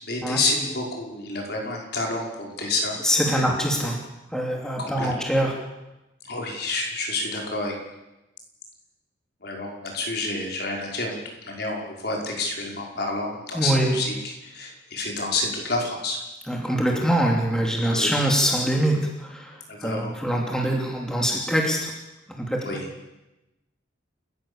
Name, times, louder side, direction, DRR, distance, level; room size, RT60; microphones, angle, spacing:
voice 1, 0.0-3.0 3.3-3.5 4.8-5.1 6.2-7.7 9.4-16.2 17.8-18.2 19.7-20.1 22.6-22.9, left 2 dB, 55° left, 0 dB, 5.6 m, -29 dB
voice 2, 3.0-4.0 4.3-5.6 13.5-13.9 16.5-21.9 22.4-22.8, right 1 dB, 5° left, -1 dB, 3.0 m, -24 dB
29.5 x 15.0 x 7.3 m, 0.98 s
head